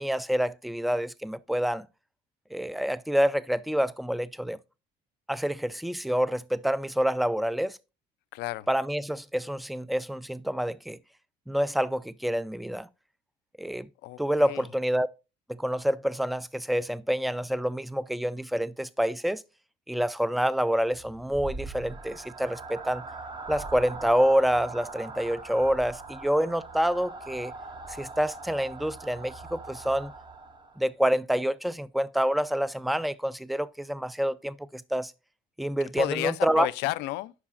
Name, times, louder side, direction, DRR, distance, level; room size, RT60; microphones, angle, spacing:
voice 1, 0.0-1.9 2.5-4.6 5.3-7.8 8.7-11.0 11.5-12.9 13.6-13.9 14.2-15.1 15.5-19.4 19.9-23.0 23.5-27.5 28.0-30.1 30.8-35.1 35.6-36.7, equal, ahead, 0.3 m, -27 dB
voice 2, 8.3-8.7 14.0-14.6 36.0-37.3, left 18 dB, 90° left, 0.4 m, -32 dB
sound 1, 20.9-30.9, right 3 dB, 25° right, 0.7 m, -41 dB
11.5 x 4.8 x 2.4 m
cardioid pair, 110°, 17 cm